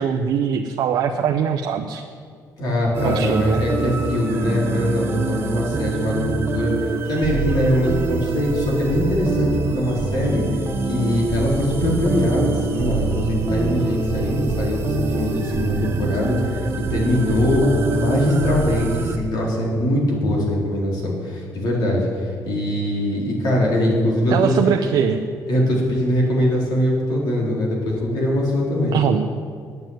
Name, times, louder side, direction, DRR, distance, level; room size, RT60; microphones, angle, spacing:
voice 1, 0.0-2.0 3.0-3.6 24.3-25.2 28.9-29.2, right 7 dB, 70° right, 3 dB, 0.7 m, -21 dB
voice 2, 2.6-10.4 10.9-16.6 16.9-24.3 25.5-29.0, left 1 dB, 70° left, -3 dB, 4.2 m, -22 dB
sound 1, 2.9-19.2, right 4 dB, 35° right, 1.1 m, -25 dB
9.7 x 9.3 x 9.0 m, 2.1 s
cardioid pair, 135°, 7 cm